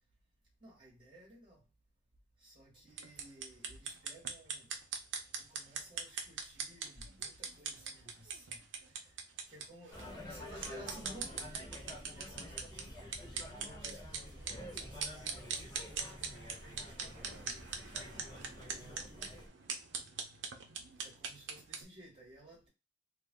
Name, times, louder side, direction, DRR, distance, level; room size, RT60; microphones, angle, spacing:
voice 1, 0.6-1.6 2.4-4.7 5.4-9.2 9.5-17.6 17.9-18.2 18.5-19.4 21.0-22.7, equal, 30° right, 1.4 m, -56 dB
sound 1, 2.9-21.8, right 6 dB, 80° right, 0.8 m, -43 dB
sound 2, 9.9-19.5, equal, 20° left, 1.2 m, -49 dB
3.2 x 2.4 x 3.6 m
head